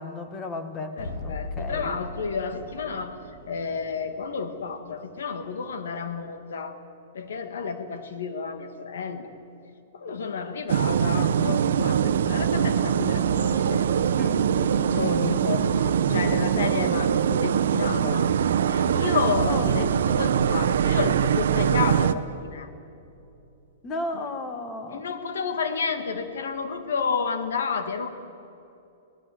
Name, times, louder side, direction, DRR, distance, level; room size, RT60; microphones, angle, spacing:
voice 1, 0.0-2.0 14.1-15.2 18.9-20.4 23.8-25.1, left 2 dB, 15° left, 8 dB, 1.6 m, -35 dB
voice 2, 1.0-3.1 3.5-6.8 7.1-9.3 9.9-14.1 15.0-18.3 18.7-22.7 24.9-28.1, left 5 dB, 85° left, 8 dB, 1.9 m, -31 dB
sound 1, 1.0-6.1, left 2 dB, 45° left, 7.6 m, -40 dB
sound 2, 10.7-22.1, right 8 dB, 70° right, 0.8 m, -23 dB
23.5 x 18.0 x 7.9 m, 2.8 s
hypercardioid pair, 170°, 0 cm